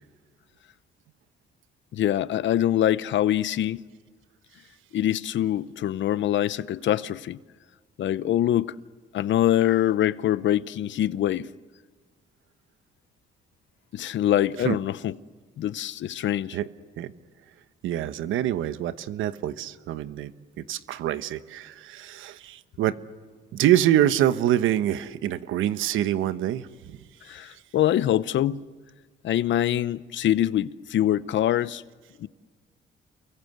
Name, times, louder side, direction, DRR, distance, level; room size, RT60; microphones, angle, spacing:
voice 1, 1.9-3.8 4.9-7.4 8.0-8.7 9.1-11.5 13.9-15.1 15.6-16.6 27.3-28.6 29.2-31.8 32.2-32.3, left 12 dB, 70° left, 0.8 m, -24 dB
voice 2, 17.8-20.3 20.6-23.0 23.5-27.0, right 12 dB, 85° right, 1.1 m, -25 dB
29.0 x 23.0 x 8.1 m
cardioid pair, 90°, 20 cm